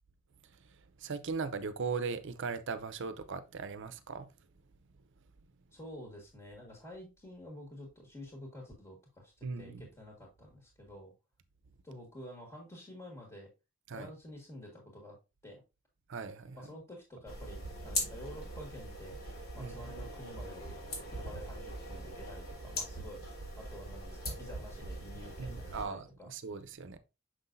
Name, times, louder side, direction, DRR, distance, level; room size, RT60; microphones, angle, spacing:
voice 1, 0.6-4.3 9.4-9.9 13.9-14.1 16.1-16.6 19.6-19.9 25.4-27.0, right 4 dB, 65° right, 0.6 m, -39 dB
voice 2, 5.7-11.1 11.8-13.5 13.9-15.1 15.4-15.6 16.6-19.2 19.5-20.6 21.1-23.2 23.6-26.3, left 1 dB, 15° left, 1.7 m, -49 dB
sound 1, 17.3-25.8, left 1 dB, 75° left, 3.3 m, -41 dB
6.4 x 5.8 x 2.6 m
head